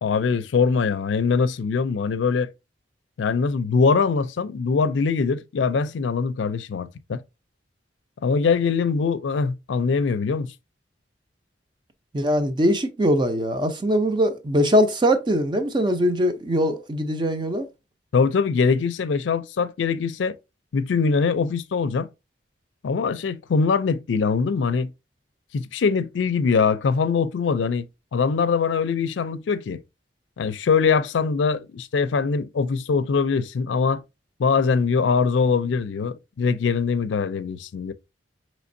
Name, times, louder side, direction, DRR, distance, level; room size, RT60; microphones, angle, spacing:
voice 1, 0.0-2.5 3.2-7.2 8.2-10.5 18.1-20.4 20.7-22.1 22.8-24.9 25.5-27.8 28.1-29.8 30.4-34.0 34.4-37.9, left 5 dB, 85° left, 0.4 m, -22 dB
voice 2, 12.1-17.7, equal, 25° right, 0.5 m, -21 dB
5.2 x 3.1 x 2.6 m
head